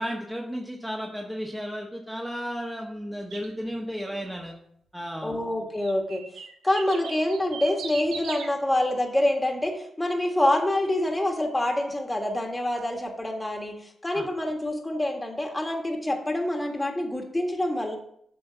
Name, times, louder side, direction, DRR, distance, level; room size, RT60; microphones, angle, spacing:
voice 1, 0.0-4.6 4.9-5.4 14.1-14.2, equal, 5° right, -1 dB, 1.3 m, -33 dB
sound 1, 3.3-3.5 5.8-8.5, right 5 dB, 85° right, 1.0 m, -38 dB
voice 2, 5.2-6.2 6.6-18.0, left 1 dB, 15° left, 3 dB, 1.6 m, -26 dB
7.7 x 3.9 x 5.7 m, 0.69 s
supercardioid pair, 50°, 0 cm